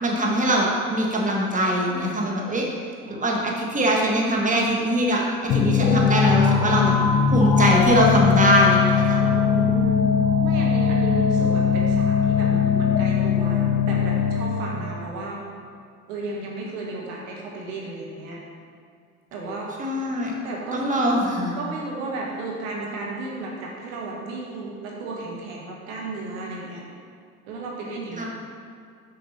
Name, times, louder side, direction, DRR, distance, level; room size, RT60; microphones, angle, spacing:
voice 1, 0.0-2.6 3.1-6.9 7.3-9.2 19.8-20.3 20.7-21.5 28.2-28.3, right 1 dB, 20° right, -1 dB, 1.4 m, -22 dB
voice 2, 3.1-3.4 9.2-10.1 10.4-15.4 16.1-18.4 19.3-19.7 20.4-20.8 21.6-26.8 27.5-28.3, right 3 dB, 70° right, -3 dB, 1.6 m, -33 dB
sound 1, 5.5-14.7, left 7 dB, 55° left, 1.1 m, -20 dB
6.6 x 6.4 x 4.2 m, 2.2 s
figure-of-eight pair, 60°, 40 cm